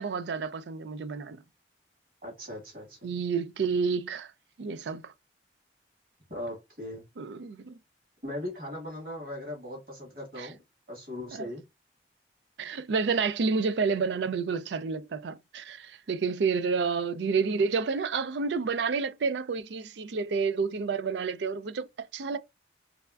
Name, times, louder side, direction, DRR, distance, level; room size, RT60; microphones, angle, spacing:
voice 1, 0.0-1.4 3.0-4.3 4.6-5.1 7.2-7.8 10.4-10.5 11.3-11.5 12.6-22.4, right 5 dB, 75° right, 0.4 m, -29 dB
voice 2, 2.2-3.1 6.3-7.0 8.2-10.6 10.9-11.6, left 1 dB, 55° right, 2.0 m, -39 dB
3.4 x 3.3 x 2.4 m
head